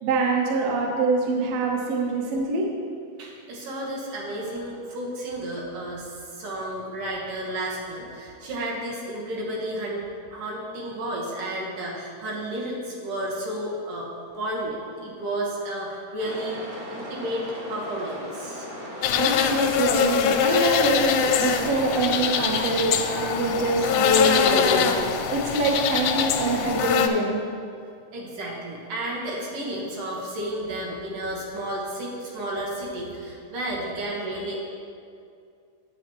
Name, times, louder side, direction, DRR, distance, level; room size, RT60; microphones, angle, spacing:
voice 1, 0.0-2.6 19.2-25.0 25.3-27.4, right 2 dB, 65° right, -1 dB, 1.8 m, -24 dB
voice 2, 3.2-10.0 10.3-14.1 14.4-18.7 28.1-34.6, right 1 dB, 80° right, -4 dB, 2.8 m, -32 dB
sound 1, 16.2-24.4, equal, 50° right, 1.1 m, -38 dB
sound 2, 19.0-27.1, left 8 dB, 80° left, 1.7 m, -23 dB
9.8 x 7.8 x 3.0 m, 2.4 s
omnidirectional pair, 3.7 m